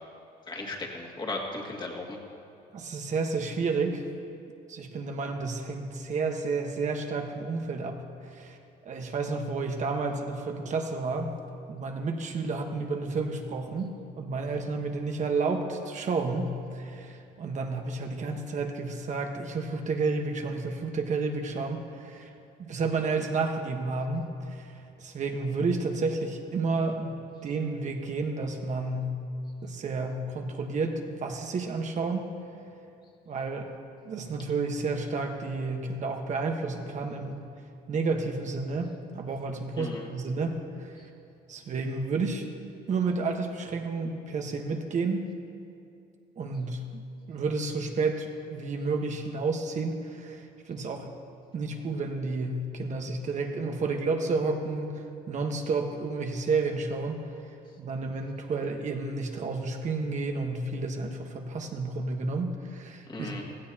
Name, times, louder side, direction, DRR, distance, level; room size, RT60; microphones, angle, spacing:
voice 1, 0.5-2.2 39.8-40.1 63.1-63.5, left 2 dB, 25° left, -1 dB, 2.1 m, -36 dB
voice 2, 2.7-4.1 4.7-8.0 8.3-8.6 8.8-11.3 11.7-22.3 22.6-29.2 29.6-32.3 33.3-33.7 34.0-37.4 37.9-40.9 41.5-42.5 42.9-45.3 46.4-47.0 47.3-51.1 51.5-57.2 57.8-63.3, right 3 dB, 45° right, 3 dB, 1.3 m, -31 dB
16.5 x 15.5 x 2.9 m, 2.5 s
cardioid pair, 110°, 17 cm